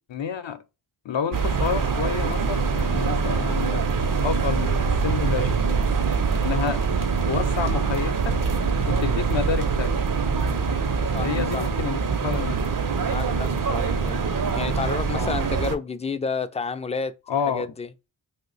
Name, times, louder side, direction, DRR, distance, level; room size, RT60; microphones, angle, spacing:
voice 1, 0.1-0.6 1.0-5.8 6.4-6.9 7.2-8.4 8.8-10.0 11.2-12.6 15.1-15.4 17.3-17.7, left 7 dB, 70° left, 0.7 m, -29 dB
sound 1, 1.3-15.8, right 5 dB, 45° right, 0.6 m, -24 dB
voice 2, 11.1-11.7 13.1-14.2 14.6-17.1 17.5-17.9, left 4 dB, 15° left, 0.3 m, -30 dB
2.7 x 2.1 x 3.9 m
cardioid pair, 45°, 47 cm